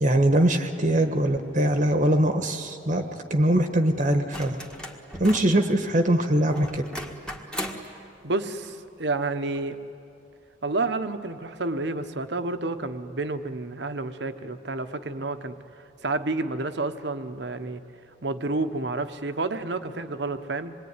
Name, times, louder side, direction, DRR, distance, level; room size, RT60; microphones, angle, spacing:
voice 1, 0.0-3.0 3.3-4.6 5.2-6.8, right 1 dB, 40° right, 6 dB, 1.3 m, -22 dB
sound 1, 4.3-5.6 6.6-7.9 9.6-9.7, equal, 5° left, 1.7 m, -37 dB
voice 2, 8.2-9.8 10.6-15.6 16.0-17.8 18.2-20.7, right 3 dB, 60° right, 9 dB, 1.1 m, -30 dB
26.5 x 22.0 x 9.7 m, 2.6 s
head